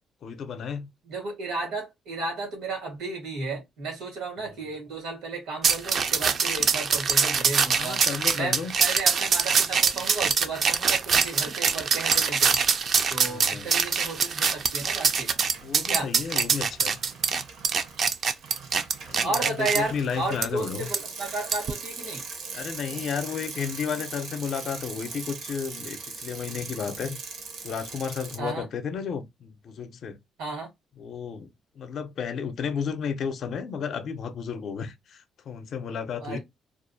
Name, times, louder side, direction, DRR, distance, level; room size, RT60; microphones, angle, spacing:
voice 1, 0.2-0.9 4.4-4.7 7.7-8.7 13.2-13.8 15.6-17.0 19.1-20.9 22.5-27.2 27.6-30.2 31.0-36.4, left 6 dB, 60° left, 0.4 m, -33 dB
voice 2, 1.1-8.0 8.3-12.5 13.1-15.3 15.9-16.1 19.2-22.2 28.4-28.7 30.4-30.7 36.2-36.4, right 3 dB, 90° right, 1.3 m, -33 dB
sound 1, 5.6-19.8 20.4-20.5 20.9-21.0 21.5-21.7, right 6 dB, 55° right, 0.3 m, -24 dB
Bicycle, 14.0-14.3 14.6-28.4, right 4 dB, 70° right, 0.7 m, -40 dB
2.4 x 2.1 x 2.6 m
cardioid pair, 100°, 0 cm